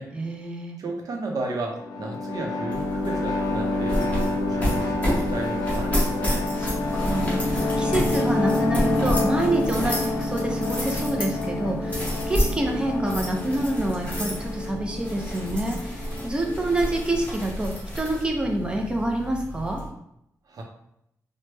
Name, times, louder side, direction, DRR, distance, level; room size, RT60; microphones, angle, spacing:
voice 1, 0.1-0.8 6.6-19.8, right 1 dB, 15° right, 1 dB, 0.5 m, -27 dB
voice 2, 0.8-6.5 20.5-20.6, right 2 dB, 65° right, 1 dB, 0.6 m, -33 dB
sound 1, 1.7-17.2, left 2 dB, 75° left, 0.4 m, -28 dB
sound 2, 2.7-19.9, equal, 20° left, 0.9 m, -30 dB
3.0 x 2.1 x 3.3 m, 0.77 s
wide cardioid pair, 180°, 7 cm